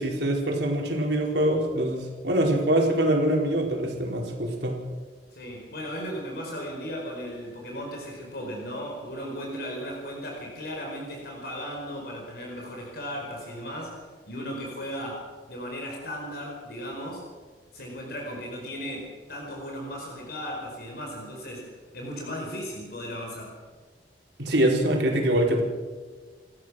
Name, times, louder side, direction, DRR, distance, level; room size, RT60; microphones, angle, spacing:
voice 1, 0.0-4.8 24.4-25.6, right 1 dB, 75° right, 0 dB, 4.6 m, -24 dB
voice 2, 5.3-17.2 17.7-23.5, equal, 60° left, 0 dB, 4.7 m, -36 dB
29.5 x 15.0 x 6.4 m, 1.4 s
head